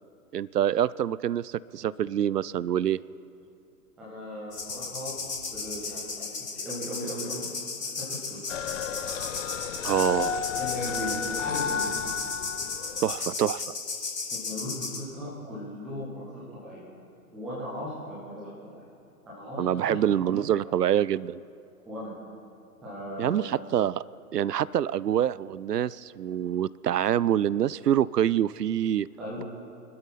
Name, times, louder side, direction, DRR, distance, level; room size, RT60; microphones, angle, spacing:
voice 1, 0.3-3.0 9.8-10.4 13.0-13.6 19.6-21.4 23.2-24.0 24.3-29.1, right 10 dB, 80° right, 21 dB, 0.6 m, -26 dB
voice 2, 4.0-5.2 5.5-7.5 7.9-8.6 10.0-10.2 10.5-12.1 14.3-16.9 17.3-18.8 19.3-20.0 21.9-22.1 22.8-23.5 29.2-29.4, equal, ahead, -7 dB, 0.4 m, -38 dB
sound 1, 4.5-15.0, left 4 dB, 70° left, 3.2 m, -35 dB
sound 2, 8.5-13.4, left 7 dB, 50° left, 1.0 m, -32 dB
25.5 x 12.5 x 4.1 m, 2.7 s
figure-of-eight pair, 120°, 47 cm